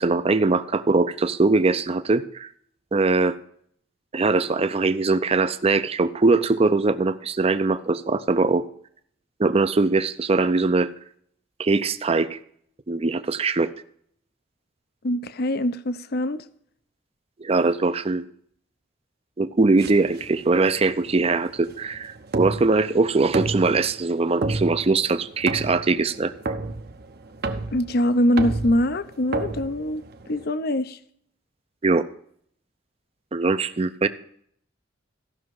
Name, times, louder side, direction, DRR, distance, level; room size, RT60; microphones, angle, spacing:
voice 1, 0.0-2.5 2.9-3.4 4.1-8.6 9.4-10.9 11.6-12.4 12.9-13.7 17.4-18.2 19.4-26.3 31.8-32.0 33.3-34.1, right 3 dB, 30° right, 12 dB, 0.5 m, -21 dB
voice 2, 15.0-16.4 27.7-30.0 30.3-31.0, left 1 dB, 55° left, 13 dB, 0.6 m, -23 dB
sound 1, 19.8-30.5, right 2 dB, 55° right, 0.8 m, -32 dB
14.5 x 6.1 x 4.7 m, 0.64 s
head